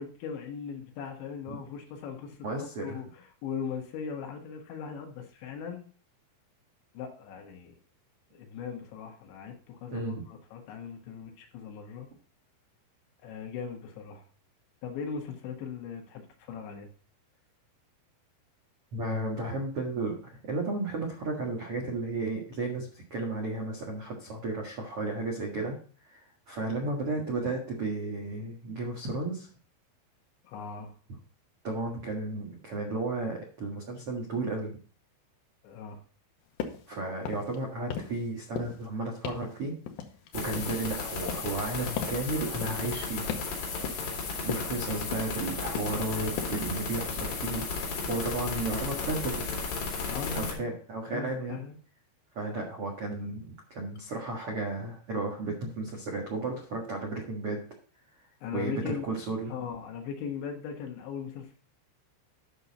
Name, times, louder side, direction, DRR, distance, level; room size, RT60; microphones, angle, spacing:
voice 1, 0.0-5.9 7.0-7.8 8.3-12.1 13.2-14.2 14.8-16.9 30.5-30.9 35.6-36.0 50.1-50.6 51.1-51.8 58.4-59.1 59.5-61.6, left 6 dB, 70° left, 3 dB, 3.6 m, -39 dB
voice 2, 2.4-3.0 9.9-10.2 18.9-25.7 26.0-29.5 31.6-34.8 36.9-39.7 40.3-43.3 44.4-49.4 50.3-51.6 52.3-57.6 58.5-59.5, right 2 dB, 70° right, -1 dB, 1.3 m, -33 dB
sound 1, 36.6-36.9 37.2-37.6 37.9-38.3 38.6-38.9 39.2-39.5 39.9-40.9 41.3-41.6 42.0-42.2 42.6-42.9 43.3-43.6 43.8-44.2 44.5-44.8 45.1-45.5 45.7-46.1 46.4-46.7, left 8 dB, 90° left, 2.0 m, -37 dB
sound 2, 40.3-50.5, left 4 dB, 55° left, 4.0 m, -34 dB
10.5 x 6.5 x 4.1 m, 0.42 s
omnidirectional pair, 5.6 m